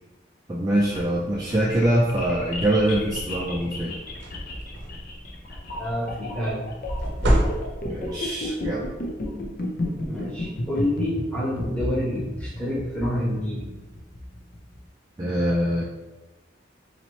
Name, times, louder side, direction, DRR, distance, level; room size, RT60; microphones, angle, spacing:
voice 1, 0.5-4.0 7.8-8.9 15.2-15.8, right 1 dB, 20° right, -5 dB, 0.3 m, -24 dB
sound 1, 0.7-14.8, left 1 dB, 50° left, 0.5 m, -33 dB
sound 2, 3.1-3.2 3.7-3.8 4.1-5.2 6.9-8.1, equal, 65° right, 0.7 m, -25 dB
voice 2, 5.5-6.6 10.1-13.7, left 1 dB, 5° left, -7 dB, 1.0 m, -28 dB
4.0 x 2.9 x 3.1 m, 1.1 s
head